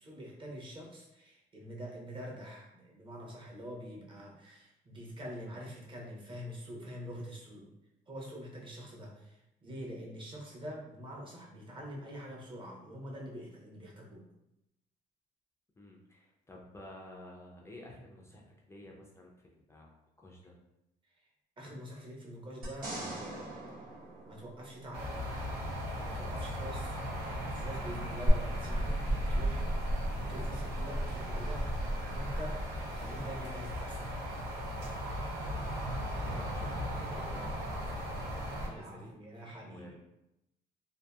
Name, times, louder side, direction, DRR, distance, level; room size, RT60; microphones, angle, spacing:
voice 1, 0.0-7.6 8.1-14.2 21.6-23.5 24.3-25.1 25.9-27.0 27.5-29.6 30.2-31.8 32.1-32.6 32.9-34.2 38.7-40.0, equal, 30° right, -2 dB, 0.8 m, -45 dB
voice 2, 15.8-20.5 36.2-39.1 39.6-40.0, left 1 dB, 15° left, -2 dB, 0.4 m, -52 dB
sound 1, 22.6-25.1 28.2-28.3, right 2 dB, 60° right, 1.2 m, -42 dB
sound 2, 24.9-38.7, equal, 85° right, 0.8 m, -35 dB
2.7 x 2.5 x 2.3 m, 0.89 s
cardioid pair, 110°, 17 cm